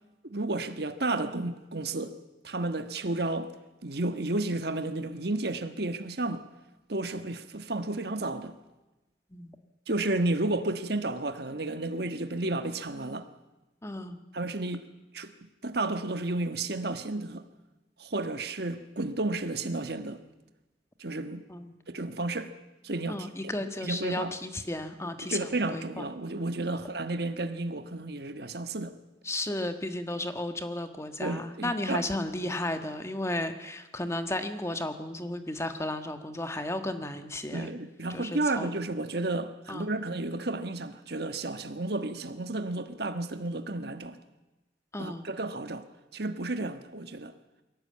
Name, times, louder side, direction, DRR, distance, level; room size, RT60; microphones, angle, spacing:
voice 1, 0.2-2.2 2.4-3.5 3.8-6.5 6.9-8.5 9.9-13.3 14.3-14.9 15.1-15.3 15.6-17.4 18.0-20.2 21.0-21.4 21.9-22.6 22.8-23.5 23.8-24.3 25.3-28.9 31.2-32.0 34.1-34.2 37.5-44.2 45.0-45.8 46.1-47.3, right 2 dB, 60° right, 1.4 m, -32 dB
voice 2, 13.8-14.2 21.5-21.7 23.1-26.1 29.2-37.7 38.1-38.8 39.7-39.9 44.9-45.3, left 1 dB, 15° left, 1.5 m, -34 dB
22.5 x 17.5 x 8.7 m
head